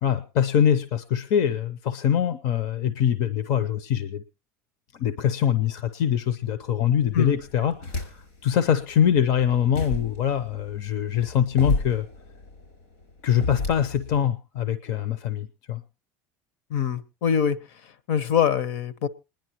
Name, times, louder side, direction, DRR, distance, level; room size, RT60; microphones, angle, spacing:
voice 1, 0.0-4.2 5.0-12.1 13.2-15.8, left 9 dB, 45° left, 12 dB, 0.6 m, -24 dB
sound 1, 6.9-8.5 8.9-14.2, left 3 dB, 80° left, 5.3 m, -33 dB
voice 2, 16.7-17.6 18.1-19.1, left 8 dB, 60° left, 17 dB, 0.9 m, -23 dB
27.5 x 10.5 x 2.9 m, 0.29 s
cardioid pair, 175°, 7 cm